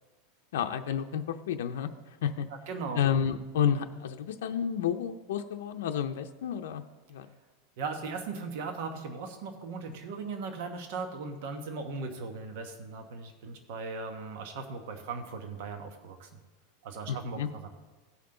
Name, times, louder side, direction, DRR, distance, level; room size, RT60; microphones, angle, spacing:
voice 1, 0.5-2.5 2.9-6.8 7.1-7.3 17.1-17.5, left 8 dB, 85° left, 5 dB, 0.6 m, -30 dB
voice 2, 2.7-3.0 7.8-16.3 16.8-17.7, right 4 dB, 55° right, 5 dB, 1.1 m, -38 dB
17.0 x 5.9 x 3.8 m, 1.2 s
supercardioid pair, 165°, 0 cm